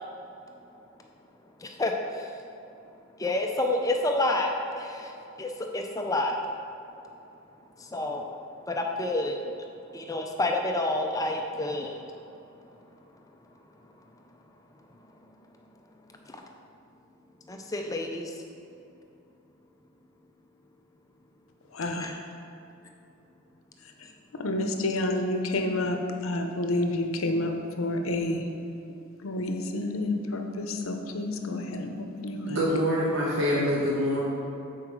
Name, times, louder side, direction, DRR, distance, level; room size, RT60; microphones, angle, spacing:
voice 1, 1.6-2.3 3.2-4.5 4.8-6.4 7.8-8.3 8.7-9.4 9.9-12.0 16.3-16.4 17.5-18.3 22.0-22.2 24.0-24.1, left 2 dB, 15° left, 2 dB, 0.4 m, -29 dB
voice 2, 24.4-26.0 26.2-28.4 29.2-31.9 32.2-32.6, left 1 dB, 70° left, 4 dB, 0.7 m, -29 dB
voice 3, 32.5-34.2, equal, 60° right, -6 dB, 1.2 m, -25 dB
7.8 x 4.7 x 4.7 m, 2.8 s
head